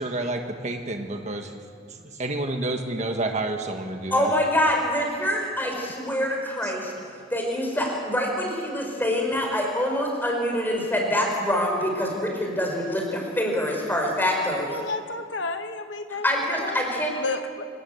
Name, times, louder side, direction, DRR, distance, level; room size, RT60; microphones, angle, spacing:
voice 1, 0.0-1.5 2.2-4.3 6.6-6.7, right 2 dB, 35° right, 4 dB, 1.6 m, -29 dB
voice 2, 4.1-6.9 7.3-14.8 16.2-17.1, left 1 dB, 10° left, 0 dB, 5.1 m, -25 dB
voice 3, 14.6-16.8 17.2-17.7, left 3 dB, 65° left, 7 dB, 1.2 m, -32 dB
26.0 x 19.0 x 8.0 m, 2.2 s
head